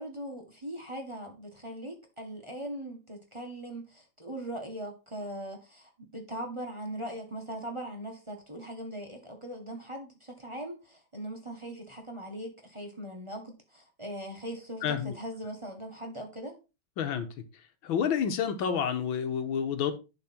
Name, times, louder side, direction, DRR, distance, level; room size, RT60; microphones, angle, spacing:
voice 1, 0.0-16.6, right 1 dB, 15° right, 1.5 m, -40 dB
voice 2, 14.8-15.1 17.0-17.3 17.8-19.9, left 7 dB, 80° left, 1.9 m, -29 dB
11.0 x 4.2 x 4.4 m
omnidirectional pair, 2.1 m